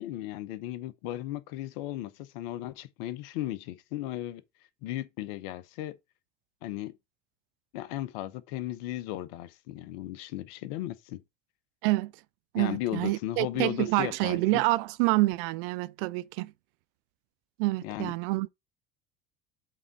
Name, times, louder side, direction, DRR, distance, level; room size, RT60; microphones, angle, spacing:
voice 1, 0.0-4.4 4.8-6.0 6.6-6.9 7.7-11.2 12.6-14.6 17.8-18.1, left 14 dB, 60° left, 0.9 m, -36 dB
voice 2, 12.5-16.5 17.6-18.5, right 21 dB, 60° right, 0.5 m, -27 dB
7.6 x 3.9 x 4.6 m
hypercardioid pair, 70°, 32 cm